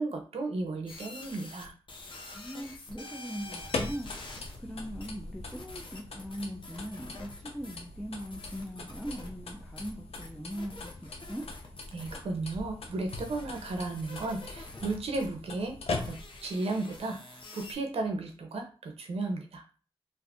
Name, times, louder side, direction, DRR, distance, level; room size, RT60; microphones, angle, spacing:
voice 1, 0.0-1.7 11.9-15.8 16.0-19.6, right 3 dB, 85° right, 4 dB, 0.6 m, -34 dB
sound 1, 0.9-17.7, left 2 dB, 55° left, 0.8 m, -48 dB
voice 2, 2.3-11.5, equal, ahead, 1 dB, 0.5 m, -40 dB
sound 2, 3.3-16.5, left 3 dB, 85° left, 0.5 m, -41 dB
2.5 x 2.4 x 3.5 m, 0.37 s
cardioid pair, 45°, 10 cm